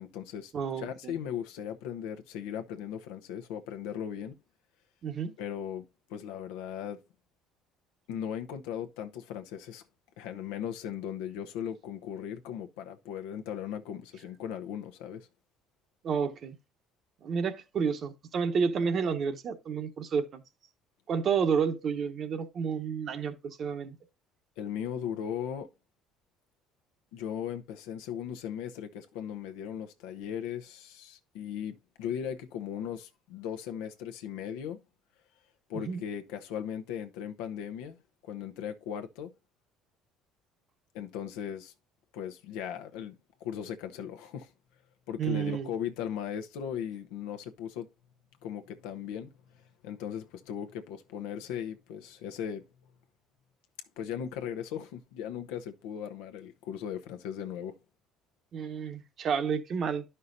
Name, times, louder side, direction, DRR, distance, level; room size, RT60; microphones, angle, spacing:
voice 1, 0.0-4.3 5.4-5.8 6.1-7.0 8.1-9.8 10.2-15.3 24.6-25.7 27.1-34.8 35.7-38.0 38.2-39.3 40.9-41.7 42.1-43.1 43.4-44.5 45.1-47.9 48.4-49.3 49.8-52.6 54.0-57.8, left 9 dB, 90° left, 0.7 m, -38 dB
voice 2, 0.5-1.1 5.0-5.3 16.0-16.6 17.2-20.4 21.1-23.9 35.7-36.0 45.2-45.7 58.5-60.0, right 6 dB, 45° right, 1.0 m, -30 dB
11.0 x 5.5 x 2.6 m
cardioid pair, 110°, 0 cm